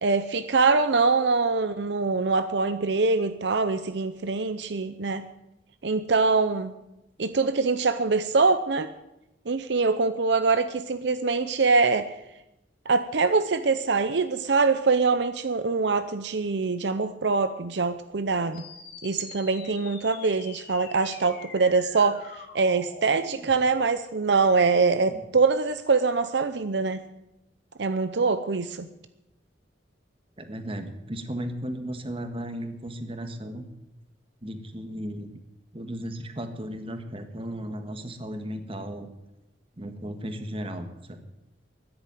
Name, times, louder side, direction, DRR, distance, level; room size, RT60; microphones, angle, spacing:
voice 1, 0.0-5.3 5.8-6.7 7.2-8.9 9.5-12.1 12.9-18.6 19.0-22.2 22.5-27.0 27.8-28.9, right 4 dB, 65° right, 11 dB, 0.7 m, -24 dB
sound 1, 18.5-23.5, left 5 dB, 55° left, 2.7 m, -45 dB
voice 2, 30.4-33.7 34.4-35.3 35.7-39.1 39.8-41.2, equal, 30° right, 7 dB, 1.6 m, -35 dB
13.0 x 10.5 x 9.2 m, 0.92 s
head